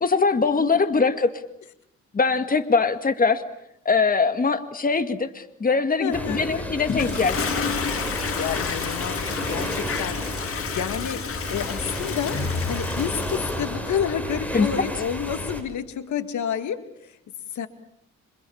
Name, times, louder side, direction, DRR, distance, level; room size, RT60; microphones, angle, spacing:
voice 1, 0.0-1.3 2.1-3.4 3.9-7.8 14.5-14.7, left 4 dB, 30° left, 9 dB, 2.1 m, -22 dB
voice 2, 6.0-6.4 8.4-10.3 10.7-11.2 11.5-12.4 12.7-17.2 17.5-17.7, left 9 dB, 70° left, 10 dB, 2.2 m, -29 dB
sound 1, 6.1-15.6, equal, 5° left, 6.3 m, -32 dB
Toilet flush, 6.8-13.7, left 6 dB, 45° left, 2.3 m, -30 dB
27.0 x 25.5 x 7.3 m, 0.75 s
cardioid pair, 90°, 30 cm